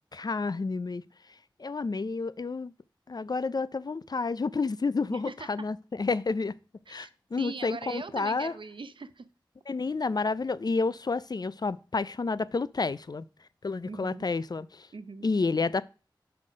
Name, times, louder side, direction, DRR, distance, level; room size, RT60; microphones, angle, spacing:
voice 1, 0.1-1.0 1.6-2.7 3.1-6.6 6.9-8.5 9.7-13.3 13.6-14.9 15.2-15.8, left 4 dB, 55° left, 0.4 m, -30 dB
voice 2, 5.1-5.5 6.9-7.1 7.4-9.3 13.9-14.3 14.9-15.3, right 4 dB, 80° right, 0.7 m, -41 dB
7.7 x 5.8 x 5.0 m
wide cardioid pair, 70°, 8 cm